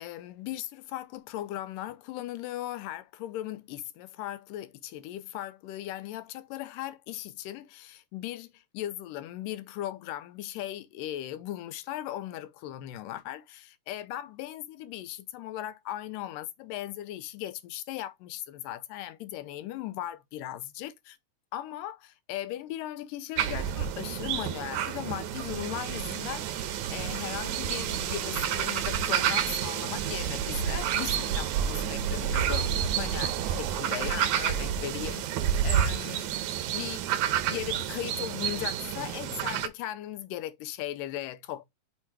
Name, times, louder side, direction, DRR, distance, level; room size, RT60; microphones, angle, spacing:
voice 1, 0.0-21.2 21.5-36.4 36.7-37.0 37.4-41.6, left 13 dB, 80° left, 2.2 m, -38 dB
sound 1, 23.4-39.7, right 9 dB, 75° right, 2.1 m, -29 dB
5.9 x 4.4 x 4.5 m
omnidirectional pair, 3.8 m